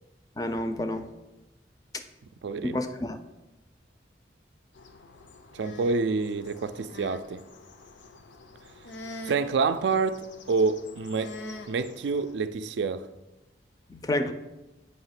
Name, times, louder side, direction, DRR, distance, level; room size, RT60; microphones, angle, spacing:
voice 1, 0.4-1.1 2.6-3.2 13.9-14.3, left 1 dB, 20° left, 0.4 m, -29 dB
voice 2, 2.4-2.8 5.5-7.4 9.3-11.3 11.7-13.1, right 4 dB, 75° right, 0.4 m, -27 dB
sound 1, 4.7-12.3, left 2 dB, 90° left, 0.6 m, -45 dB
8.0 x 2.9 x 5.7 m
head